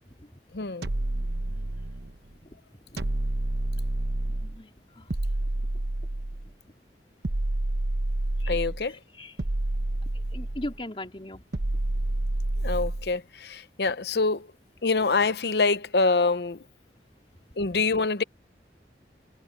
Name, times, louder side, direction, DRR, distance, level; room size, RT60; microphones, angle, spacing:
voice 1, 0.5-0.9 8.5-9.0 12.6-14.5 14.8-16.6 17.6-18.2, left 3 dB, 65° left, 0.8 m, -25 dB
sound 1, 0.8-2.1 3.0-4.6 5.1-6.5 7.2-8.9 9.4-10.8 11.5-13.1, right 1 dB, 70° right, 1.0 m, -29 dB
voice 2, 4.3-5.1 8.4-8.6 9.2-9.3 10.3-11.4, left 1 dB, 30° left, 3.7 m, -38 dB
head